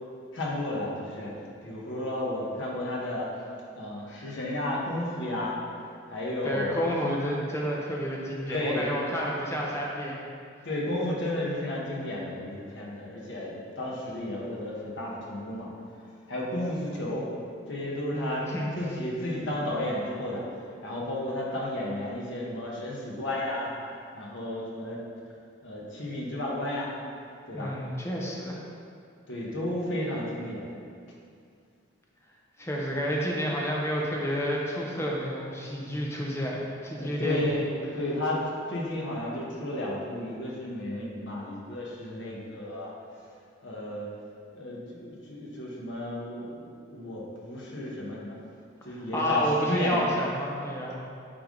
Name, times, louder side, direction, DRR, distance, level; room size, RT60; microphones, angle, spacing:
voice 1, 0.3-3.3 3.8-5.6 6.1-6.8 8.5-8.9 10.6-15.7 16.3-17.3 17.7-18.5 18.8-20.4 20.8-23.7 24.1-25.0 25.6-26.9 27.5-27.7 29.3-30.8 36.9-42.9 43.6-44.1 44.5-48.4 48.8-50.1, left 1 dB, 65° left, -4 dB, 1.2 m, -33 dB
voice 2, 6.4-10.2 18.1-18.7 27.5-28.6 32.6-37.4 48.9-51.0, equal, 15° left, -3 dB, 0.7 m, -30 dB
8.8 x 3.5 x 3.8 m, 2.3 s
head